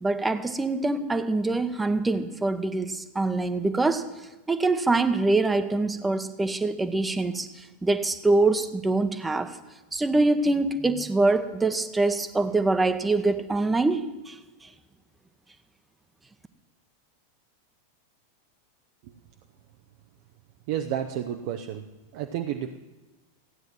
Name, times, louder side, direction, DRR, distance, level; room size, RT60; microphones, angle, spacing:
voice 1, 0.0-4.1 4.5-9.6 9.9-14.0 14.3-14.7, right 2 dB, 10° right, 10 dB, 1.0 m, -24 dB
voice 2, 20.7-21.8 22.1-22.8, right 10 dB, 45° right, 5 dB, 0.7 m, -31 dB
15.5 x 9.2 x 7.5 m, 1.1 s
figure-of-eight pair, 90°, 0 cm